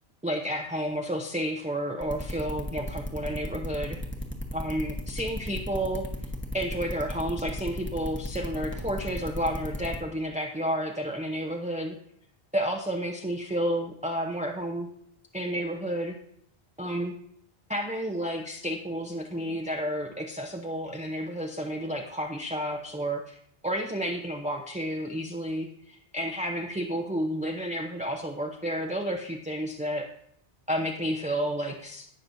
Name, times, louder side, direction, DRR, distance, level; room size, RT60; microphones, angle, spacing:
voice 1, 0.2-4.0 4.5-6.1 6.5-12.0 12.5-14.9 15.3-16.2 16.8-17.1 17.7-23.4 23.6-30.1 30.7-32.1, equal, 10° right, 1 dB, 0.5 m, -31 dB
sound 1, 2.0-10.0, equal, 10° left, 1.0 m, -34 dB
17.5 x 6.0 x 2.7 m, 0.68 s
omnidirectional pair, 1.1 m